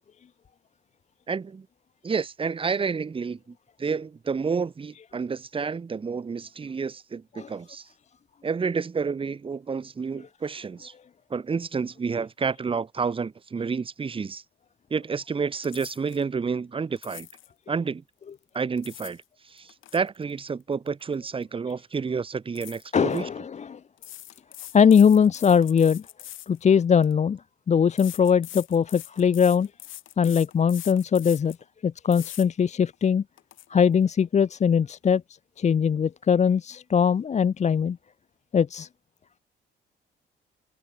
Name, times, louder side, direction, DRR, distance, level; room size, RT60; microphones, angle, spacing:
voice 1, 1.3-1.7 2.0-7.9 8.4-10.9 11.3-14.4 14.9-17.3 17.7-18.0 18.5-23.3, right 5 dB, 25° right, 0.8 m, -30 dB
sound 1, 15.6-16.2 17.0-17.5 18.5-19.2 19.6-21.4 21.7-21.9 22.6-23.2 24.0-27.1 28.0-31.6 32.1-32.5 32.9-33.0 33.4-33.7, left 13 dB, 80° left, 2.8 m, -43 dB
voice 2, 22.9-23.8 24.7-26.0 26.5-27.4 27.7-29.7 30.2-31.6 31.8-33.2 33.7-35.2 35.6-38.0 38.5-38.9, left 7 dB, 35° left, 0.6 m, -21 dB
cardioid pair, 90°, 20 cm